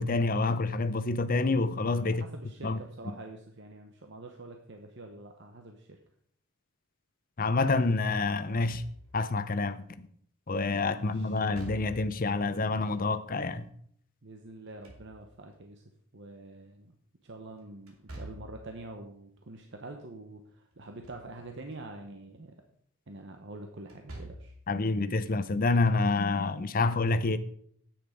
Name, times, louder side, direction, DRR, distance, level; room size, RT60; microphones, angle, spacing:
voice 1, 0.0-2.2 2.6-2.8 7.4-8.8 9.1-9.8 10.5-13.6 24.7-27.4, left 3 dB, 40° left, 0.7 m, -27 dB
voice 2, 2.0-6.0 10.9-11.4 14.2-15.8 16.1-16.9 17.2-22.6 23.1-24.5, right 2 dB, 55° right, 1.0 m, -46 dB
Slam / Thump thud, 8.4-9.3 11.4-12.3 14.5-15.6 17.9-18.7 20.7-21.3 21.7-21.8 23.8-24.6, right 1 dB, 75° right, 2.9 m, -46 dB
10.0 x 8.9 x 5.1 m
head